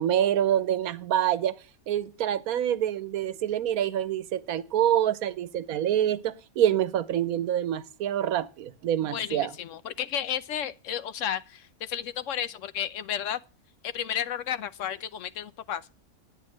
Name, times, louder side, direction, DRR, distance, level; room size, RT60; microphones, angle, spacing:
voice 1, 0.0-1.5 1.9-9.5, right 11 dB, 90° right, 1.2 m, -26 dB
voice 2, 9.1-13.4 13.8-15.9, left 9 dB, 65° left, 1.1 m, -32 dB
10.0 x 9.0 x 6.3 m
omnidirectional pair, 1.5 m